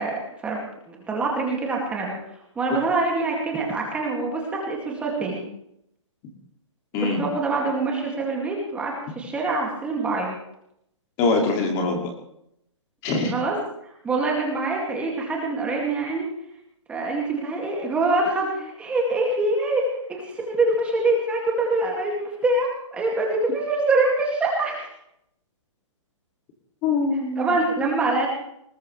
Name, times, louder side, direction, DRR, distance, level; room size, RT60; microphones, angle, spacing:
voice 1, 0.0-2.2 2.6-5.4 7.0-10.4 13.3-13.6 14.0-16.3 16.9-24.9 27.4-28.3, right 2 dB, 5° right, -1 dB, 2.2 m, -25 dB
voice 2, 11.2-12.1 13.0-13.3 26.8-27.6, left 3 dB, 20° left, 2 dB, 2.4 m, -23 dB
20.5 x 19.5 x 3.3 m, 0.75 s
hypercardioid pair, 170°, 16 cm